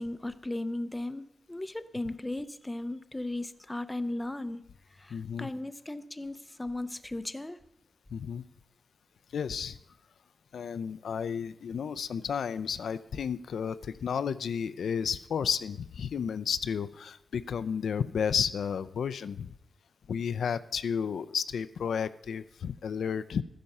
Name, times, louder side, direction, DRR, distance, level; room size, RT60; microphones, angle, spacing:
voice 1, 0.0-4.6 5.0-7.6, left 1 dB, 10° left, 13 dB, 0.5 m, -36 dB
voice 2, 5.1-5.5 8.1-8.4 9.3-9.8 10.5-19.5 20.1-23.4, left 7 dB, 85° left, 14 dB, 0.5 m, -32 dB
13.0 x 10.5 x 5.4 m, 0.79 s
wide cardioid pair, 165°, 0 cm